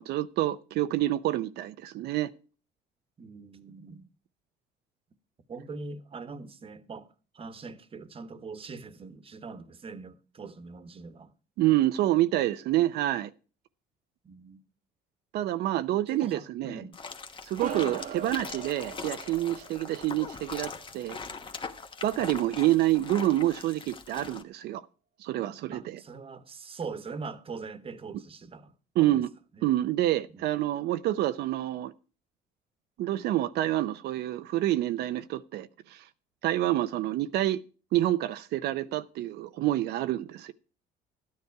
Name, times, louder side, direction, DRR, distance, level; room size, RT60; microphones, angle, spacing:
voice 1, 0.0-2.3 11.6-13.3 15.3-16.8 17.4-21.2 22.0-24.8 25.2-26.0 29.0-29.3 29.6-31.9 33.0-36.1 36.4-37.6 37.9-40.5, right 14 dB, 75° right, 0.6 m, -27 dB
voice 2, 3.2-4.1 5.5-7.1 7.3-11.3 14.2-14.6 16.1-17.0 17.7-18.0 25.7-29.2 29.5-29.7 30.3-30.4, right 4 dB, 35° right, 1.2 m, -42 dB
sound 1, 16.9-24.4, left 4 dB, 30° left, 1.1 m, -41 dB
sound 2, 17.6-22.3, right 9 dB, 55° right, 1.0 m, -42 dB
13.0 x 9.6 x 4.6 m
cardioid pair, 110°, 17 cm